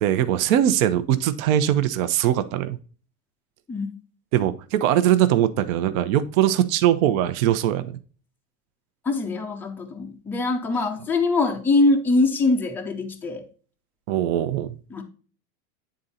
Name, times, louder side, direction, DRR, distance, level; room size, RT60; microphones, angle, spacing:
voice 1, 0.0-2.8 4.3-8.0 10.8-10.9 14.1-14.8, right 11 dB, 60° right, 0.9 m, -21 dB
voice 2, 9.1-13.5 14.9-15.0, left 3 dB, 5° left, 0.4 m, -23 dB
9.6 x 3.9 x 4.1 m
supercardioid pair, 150°, 47 cm